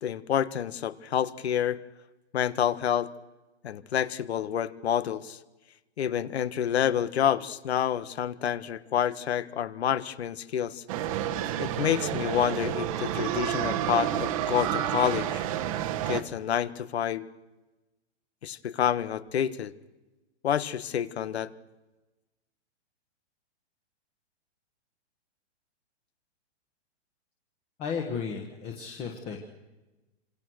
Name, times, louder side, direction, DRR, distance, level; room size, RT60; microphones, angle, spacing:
voice 1, 0.0-1.8 2.3-3.1 3.6-5.4 6.0-10.8 11.6-15.4 16.1-17.3 18.4-19.7 20.4-21.5, left 9 dB, 65° left, 15 dB, 1.5 m, -28 dB
sound 1, 10.9-16.2, right 11 dB, 30° right, 1.3 m, -30 dB
voice 2, 27.8-29.4, left 6 dB, 15° left, 2 dB, 1.5 m, -34 dB
27.5 x 26.5 x 6.4 m, 1.1 s
hypercardioid pair, 175°, 35 cm